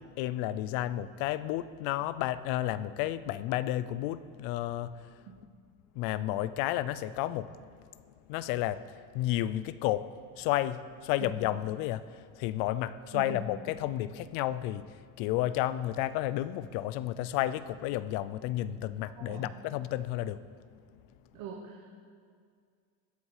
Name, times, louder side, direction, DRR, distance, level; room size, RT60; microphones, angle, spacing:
voice 1, 0.0-5.2 5.9-7.5 8.0-20.4 20.7-20.8, left 13 dB, 55° left, 0.5 m, -32 dB
voice 2, 13.1-13.4 19.2-19.5 21.3-21.9, right 7 dB, 40° right, 1.2 m, -42 dB
21.0 x 8.4 x 4.9 m
cardioid pair, 175°, 42 cm